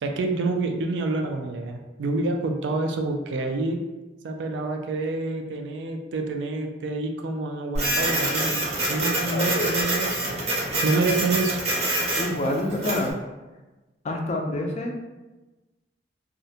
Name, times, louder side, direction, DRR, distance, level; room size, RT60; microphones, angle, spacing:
voice 1, 0.0-3.8 4.2-8.6 8.9-10.3 10.8-11.6, right 2 dB, 85° right, 4 dB, 0.3 m, -27 dB
Printer, 7.7-13.1, right 1 dB, 35° right, 0.6 m, -26 dB
voice 2, 9.3-9.7 12.2-13.1 14.0-15.0, left 1 dB, 40° left, 1 dB, 0.3 m, -27 dB
2.4 x 2.1 x 2.7 m, 1.1 s
head